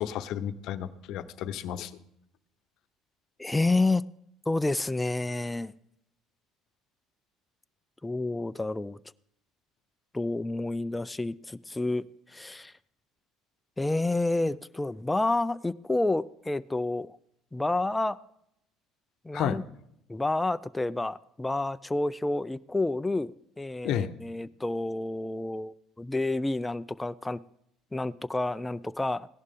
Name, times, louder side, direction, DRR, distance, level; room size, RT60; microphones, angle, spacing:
voice 1, 0.0-1.9 19.3-19.6 23.8-24.1, left 10 dB, 65° left, 12 dB, 0.7 m, -32 dB
voice 2, 3.4-4.0 4.5-5.7 8.0-9.0 10.1-12.7 13.8-17.2 17.5-18.2 19.2-19.6 20.1-27.4 27.9-29.3, left 2 dB, 15° left, 14 dB, 0.4 m, -29 dB
16.5 x 11.0 x 3.7 m, 0.75 s
supercardioid pair, 75°, 0 cm